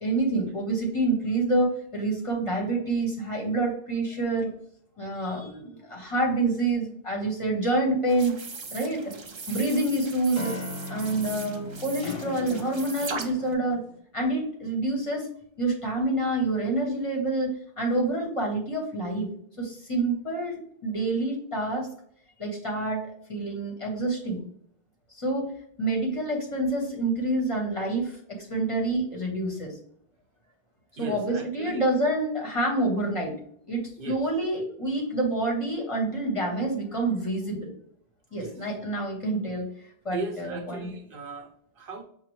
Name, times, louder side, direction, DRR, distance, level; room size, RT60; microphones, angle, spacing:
voice 1, 0.0-4.5 5.0-8.3 8.7-9.1 9.5-10.6 10.9-13.8 14.1-15.3 15.6-19.3 19.6-21.9 22.4-24.4 25.1-25.5 25.8-29.7 31.0-33.4 33.7-37.7 38.3-39.7 40.0-40.9, right 2 dB, 35° left, -1 dB, 0.9 m, -27 dB
sound 1, 8.1-13.5, right 4 dB, 35° right, 0.5 m, -39 dB
sound 2, 8.9-9.7 10.3-14.0, left 3 dB, 70° left, 0.8 m, -39 dB
voice 2, 31.0-31.9 34.0-34.2 38.3-38.6 40.1-42.0, right 4 dB, 65° right, 0 dB, 0.9 m, -38 dB
6.1 x 2.2 x 3.0 m, 0.65 s
omnidirectional pair, 1.0 m